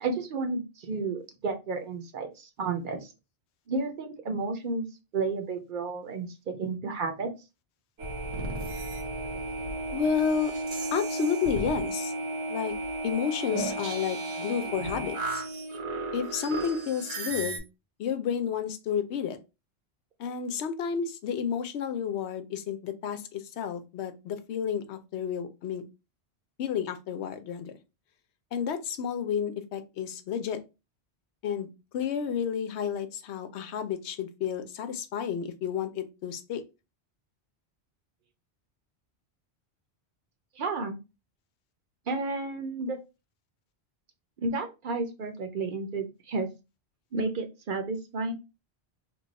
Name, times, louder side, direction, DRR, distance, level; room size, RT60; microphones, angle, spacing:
voice 1, 0.0-3.1 3.7-4.9 5.1-7.3 40.6-41.0 42.1-43.0 44.4-46.5 47.1-48.3, right 3 dB, 60° right, 5 dB, 0.7 m, -32 dB
sound 1, 8.0-17.6, right 2 dB, 90° right, 1.1 m, -33 dB
voice 2, 9.9-10.5 10.9-12.1 12.5-12.7 13.0-15.4 16.1-17.6 18.0-19.4 20.2-25.8 26.6-27.7 28.5-30.6 31.4-36.6, left 7 dB, 90° left, 10 dB, 0.9 m, -31 dB
3.1 x 2.3 x 3.9 m, 0.27 s
omnidirectional pair, 1.1 m